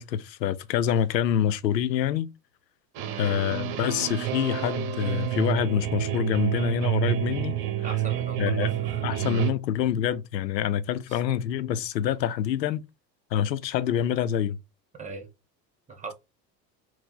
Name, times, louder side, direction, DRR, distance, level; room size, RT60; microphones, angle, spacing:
voice 1, 0.0-2.3 3.2-7.6 8.4-8.7 9.0-12.8 13.3-14.6, left 9 dB, 80° left, 0.6 m, -26 dB
sound 1, 2.9-9.5, right 12 dB, 45° right, 1.0 m, -28 dB
voice 2, 7.8-9.0 11.1-11.2 15.0-15.3 15.9-16.1, right 4 dB, 15° right, 1.4 m, -40 dB
4.3 x 2.1 x 4.1 m
figure-of-eight pair, 70°, 50 cm